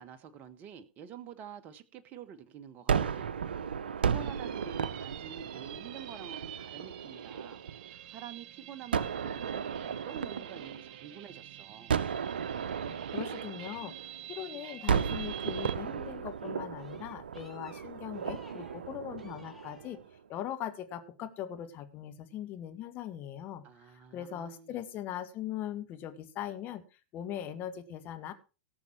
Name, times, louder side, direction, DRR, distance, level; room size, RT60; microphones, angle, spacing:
voice 1, 0.0-3.3 4.0-12.0 23.6-24.8, right 8 dB, 35° right, 1.3 m, -48 dB
Gunshot gunfire, 2.9-8.0 8.9-11.3 11.9-14.4 14.9-20.1, right 7 dB, 70° right, 0.8 m, -35 dB
sound 1, 4.2-15.8, right 11 dB, 50° right, 1.1 m, -48 dB
voice 2, 12.8-13.9 14.3-20.0 20.3-23.6 24.1-26.8 27.1-28.3, left 11 dB, 35° left, 1.9 m, -40 dB
sound 2, 14.4-15.7 16.3-20.0, equal, ahead, 3.4 m, -58 dB
18.0 x 7.0 x 4.5 m
figure-of-eight pair, 100°, 6 cm